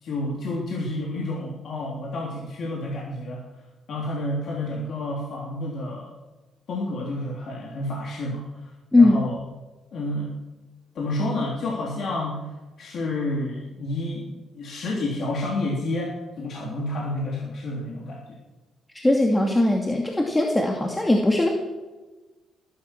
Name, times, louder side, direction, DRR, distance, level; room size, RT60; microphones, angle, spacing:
voice 1, 0.0-3.5 3.9-6.1 6.7-8.7 9.0-9.4 9.9-10.3 11.0-12.5 12.8-18.4, left 1 dB, 60° left, -2 dB, 3.5 m, -30 dB
voice 2, 18.9-21.5, left 2 dB, 10° left, 0 dB, 2.4 m, -19 dB
19.0 x 11.5 x 6.1 m, 1.2 s
cardioid pair, 90°, 0 cm